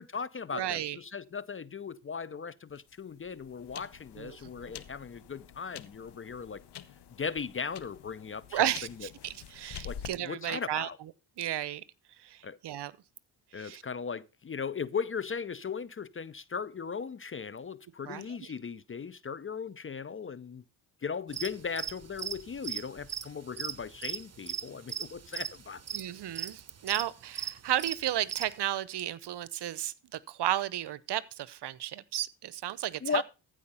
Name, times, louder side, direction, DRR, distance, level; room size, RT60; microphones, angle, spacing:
voice 1, 0.0-6.6 7.2-8.7 9.0-9.1 9.8-11.0 12.4-12.6 13.5-20.6 21.0-25.8 33.0-33.2, left 6 dB, 25° left, 0.5 m, -37 dB
voice 2, 0.5-1.0 4.2-4.4 8.5-8.9 9.2-10.9 11.4-11.8 12.2-12.9 13.6-13.8 18.1-18.3 25.9-33.2, right 12 dB, 55° right, 0.8 m, -33 dB
sound 1, 2.7-10.1, left 9 dB, 55° left, 0.9 m, -48 dB
sound 2, 21.3-28.5, right 8 dB, 30° right, 1.0 m, -38 dB
14.5 x 5.0 x 5.5 m
supercardioid pair, 60°, 48 cm